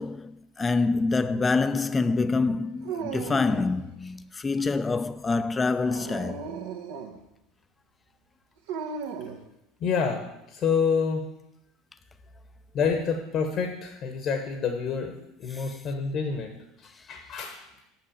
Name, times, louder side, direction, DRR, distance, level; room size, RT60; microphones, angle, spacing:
voice 1, 0.0-6.4 15.5-15.6, left 3 dB, 20° left, 0.5 m, -26 dB
Dog, 2.8-3.8 5.7-7.2 8.7-9.4, right 6 dB, 70° right, 1.1 m, -36 dB
voice 2, 9.8-11.2 12.7-17.7, left 6 dB, 50° left, 1.1 m, -28 dB
6.6 x 6.0 x 7.3 m
hypercardioid pair, 70°, 0 cm